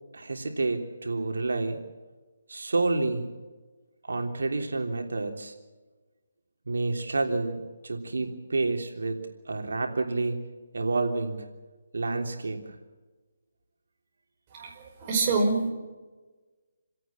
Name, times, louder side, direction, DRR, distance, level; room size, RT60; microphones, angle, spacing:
voice 1, 0.1-1.8 2.5-3.3 4.0-5.5 6.7-7.6 7.8-9.2 9.5-10.4 10.7-11.5 11.9-12.7, right 3 dB, 85° right, 4 dB, 3.3 m, -29 dB
voice 2, 15.0-15.7, right 3 dB, 25° right, 1 dB, 5.3 m, -25 dB
29.0 x 17.5 x 7.5 m, 1.3 s
hypercardioid pair, 165°, 0 cm